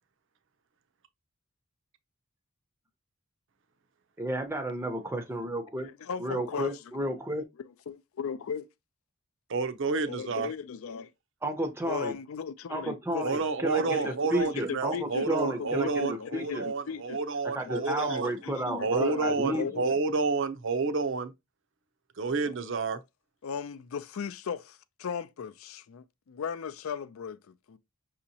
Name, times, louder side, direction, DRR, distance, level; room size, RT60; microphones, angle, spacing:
voice 1, 4.2-5.9 6.2-7.4 11.4-12.1 12.7-15.9 16.3-16.7 17.5-19.6, right 1 dB, 10° right, 0.5 m, -32 dB
voice 2, 5.8-7.0 7.6-8.7 10.1-11.1 11.8-13.3 13.6-17.2 17.6-20.0 22.4-22.6 23.4-27.8, left 6 dB, 70° left, 0.4 m, -37 dB
voice 3, 9.5-10.5 13.2-18.3 18.8-21.3 22.2-23.0, right 4 dB, 60° right, 0.6 m, -29 dB
5.9 x 2.8 x 2.8 m
head